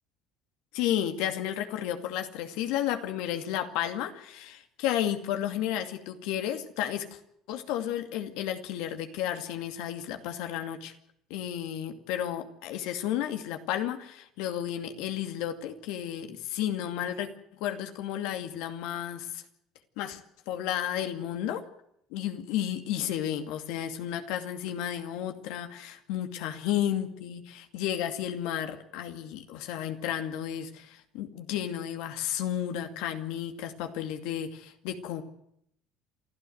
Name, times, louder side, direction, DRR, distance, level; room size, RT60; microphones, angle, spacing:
voice 1, 0.7-7.2 7.5-10.9 11.3-17.3 17.6-19.4 20.0-20.2 20.5-21.6 22.1-35.2, left 11 dB, 75° left, 6 dB, 2.4 m, -32 dB
28.5 x 13.0 x 7.9 m, 0.75 s
supercardioid pair, 85°, 0 cm